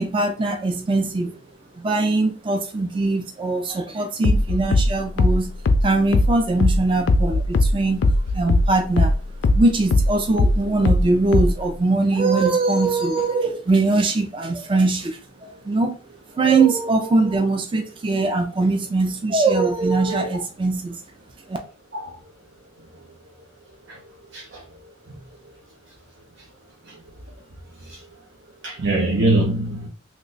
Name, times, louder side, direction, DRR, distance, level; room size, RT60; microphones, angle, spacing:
voice 1, 0.0-1.3 1.8-5.5 5.8-8.0 8.3-9.1 9.5-16.0 16.3-21.0 21.5-21.6, right 3 dB, 25° right, 0.4 m, -21 dB
sound 1, 4.2-9.2 9.4-11.7, left 2 dB, 85° left, 0.4 m, -18 dB
voice 2, 28.6-29.9, right 2 dB, 75° right, 0.7 m, -23 dB
3.0 x 2.2 x 3.9 m
head